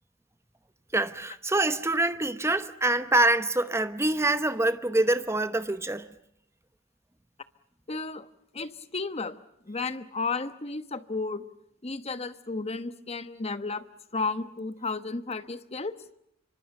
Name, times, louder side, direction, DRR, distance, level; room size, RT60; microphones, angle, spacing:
voice 1, 0.9-6.1, right 2 dB, 15° right, 0.9 m, -25 dB
voice 2, 7.9-8.3 8.5-9.4 9.6-11.4 11.8-13.8 14.1-16.0, left 3 dB, 30° left, 1.1 m, -33 dB
26.0 x 25.5 x 6.7 m
head